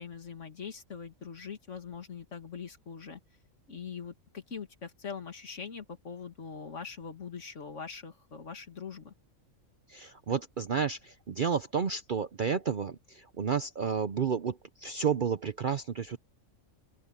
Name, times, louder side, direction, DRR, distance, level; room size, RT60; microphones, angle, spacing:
voice 1, 0.0-3.2 3.7-9.1, left 6 dB, 60° left, 2.2 m, -42 dB
voice 2, 9.9-16.2, right 6 dB, 50° right, 0.6 m, -31 dB
open air
omnidirectional pair, 1.5 m